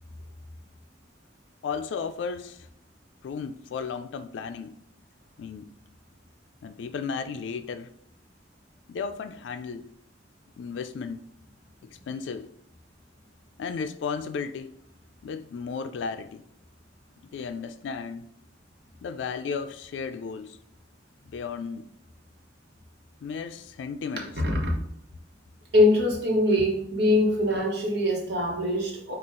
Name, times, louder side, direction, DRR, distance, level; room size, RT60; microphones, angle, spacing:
voice 1, 1.6-2.7 3.2-4.8 5.4-5.7 6.6-7.9 8.9-9.9 10.6-11.2 11.8-12.5 13.6-14.7 15.2-16.4 17.3-18.3 19.0-20.6 21.3-21.9 23.2-24.3, left 5 dB, 75° left, 0.3 m, -34 dB
voice 2, 24.4-24.7 25.7-29.2, left 1 dB, 65° right, 1.1 m, -23 dB
5.5 x 2.4 x 3.7 m
head